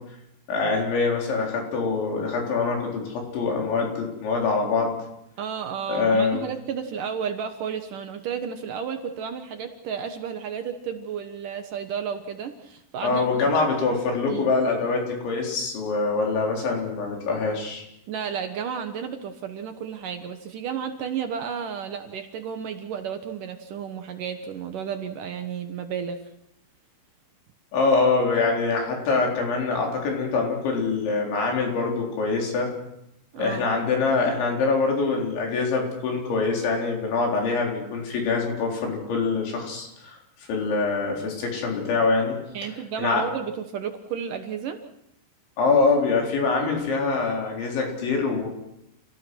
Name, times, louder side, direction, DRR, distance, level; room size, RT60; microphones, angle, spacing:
voice 1, 0.5-4.9 5.9-6.5 13.0-17.9 27.7-32.7 33.4-40.2 40.5-42.4 43.0-43.2 45.6-48.5, left 4 dB, 70° left, 0 dB, 6.4 m, -24 dB
voice 2, 5.4-13.2 14.3-14.5 18.1-26.2 33.3-33.7 42.5-44.8, right 7 dB, 70° right, 6 dB, 2.0 m, -32 dB
29.0 x 18.0 x 6.2 m, 0.81 s
omnidirectional pair, 5.6 m